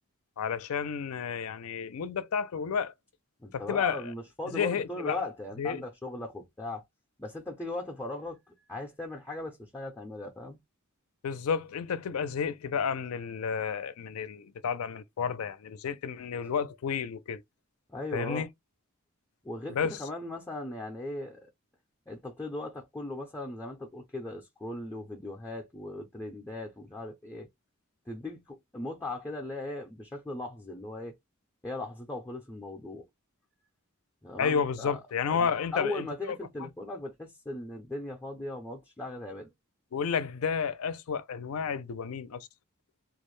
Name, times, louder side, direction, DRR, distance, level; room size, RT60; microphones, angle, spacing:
voice 1, 0.4-2.9 3.5-4.1 4.5-5.2 5.6-5.8 11.2-17.4 18.1-18.5 19.7-20.0 34.4-36.7 39.9-42.5, left 6 dB, 75° left, 0.4 m, -31 dB
voice 2, 3.4-6.8 7.2-8.4 8.7-10.6 17.9-18.5 19.4-21.5 22.1-27.5 28.1-31.1 31.6-33.0 34.2-39.5, left 2 dB, 10° left, 0.4 m, -38 dB
2.4 x 2.0 x 3.1 m
head